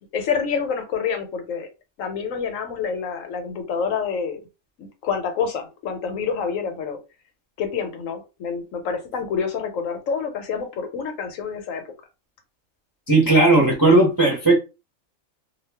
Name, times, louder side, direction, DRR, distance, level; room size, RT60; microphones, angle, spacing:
voice 1, 0.1-1.7 2.0-4.4 4.8-7.0 7.6-11.9, left 6 dB, 75° left, 1.1 m, -27 dB
voice 2, 13.1-14.6, right 2 dB, 20° right, 0.7 m, -16 dB
2.4 x 2.3 x 3.3 m
omnidirectional pair, 1.4 m